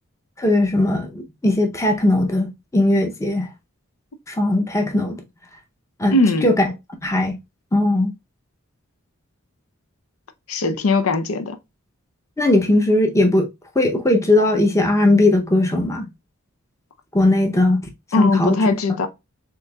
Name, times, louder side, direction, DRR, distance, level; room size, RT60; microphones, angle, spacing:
voice 1, 0.4-3.5 4.3-5.2 6.0-6.7 7.0-7.4 7.7-8.1 12.4-13.5 13.8-16.1 17.1-17.8 18.2-18.7, left 1 dB, 15° left, 0.6 m, -18 dB
voice 2, 6.1-6.5 10.5-11.6 18.1-19.1, left 2 dB, 75° left, 0.5 m, -19 dB
6.7 x 2.5 x 2.3 m
head